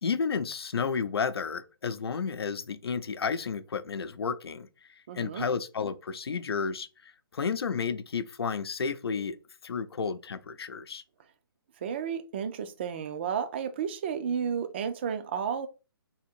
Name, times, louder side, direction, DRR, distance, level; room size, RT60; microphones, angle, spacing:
voice 1, 0.0-4.9 5.1-9.4 9.6-11.0, left 5 dB, 85° left, 0.6 m, -32 dB
voice 2, 5.1-5.4 11.8-15.7, right 7 dB, 30° right, 0.4 m, -32 dB
3.5 x 2.8 x 4.3 m
hypercardioid pair, 165°, 13 cm